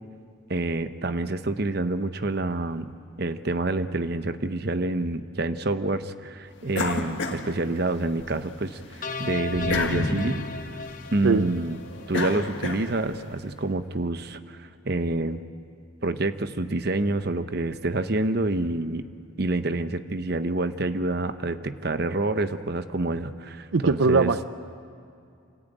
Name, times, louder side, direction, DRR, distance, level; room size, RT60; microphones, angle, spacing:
voice 1, 0.5-2.9 3.2-10.5 11.1-11.8 12.1-15.4 16.0-19.1 19.4-24.3, right 2 dB, 50° right, 10 dB, 0.9 m, -27 dB
sound 1, 6.7-8.3 8.7-13.3, left 2 dB, 70° left, 1.8 m, -31 dB
sound 2, 9.0-12.3, left 4 dB, 40° left, 1.1 m, -36 dB
voice 2, 23.7-24.4, right 4 dB, 85° right, 12 dB, 0.6 m, -21 dB
28.0 x 14.0 x 9.2 m, 2.4 s
head